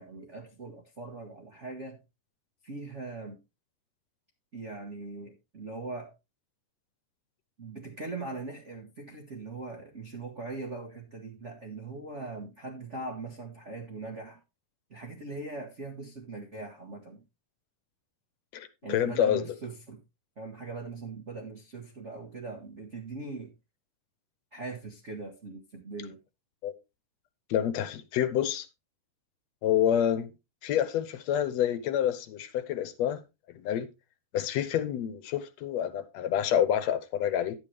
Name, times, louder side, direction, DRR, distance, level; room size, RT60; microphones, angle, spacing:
voice 1, 0.0-2.0 2.6-3.4 4.5-6.1 7.6-14.4 14.9-17.2 18.8-20.0 20.4-23.5 24.5-26.2, right 3 dB, 80° right, 0.6 m, -40 dB
voice 2, 18.5-19.4 26.6-26.7 27.5-28.7 29.6-30.3 30.6-33.2 33.6-33.9 34.3-37.6, left 10 dB, 70° left, 1.8 m, -28 dB
10.5 x 8.8 x 3.3 m
omnidirectional pair, 3.6 m